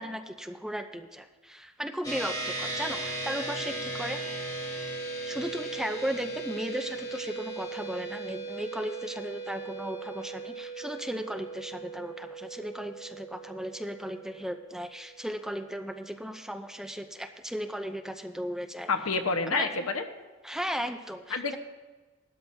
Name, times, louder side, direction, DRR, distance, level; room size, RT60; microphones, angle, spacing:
voice 1, 0.0-4.2 5.2-18.9 19.5-19.7 20.4-21.6, equal, ahead, 6 dB, 0.5 m, -36 dB
sound 1, 2.0-15.7, right 2 dB, 15° left, 2.4 m, -38 dB
voice 2, 18.9-20.0 21.3-21.6, left 4 dB, 80° left, 6 dB, 1.1 m, -28 dB
18.0 x 12.5 x 2.7 m, 1.2 s
head